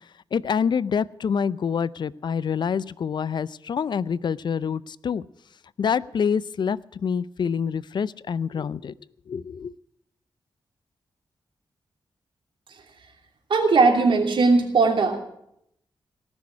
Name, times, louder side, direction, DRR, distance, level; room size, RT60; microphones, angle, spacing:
voice 1, 0.3-5.2 5.8-8.9 9.3-9.7, left 6 dB, 60° left, 19 dB, 0.5 m, -26 dB
voice 2, 13.5-15.2, right 4 dB, 75° right, 3 dB, 2.9 m, -19 dB
18.5 x 6.2 x 9.7 m, 0.75 s
cardioid pair, 80°, 9 cm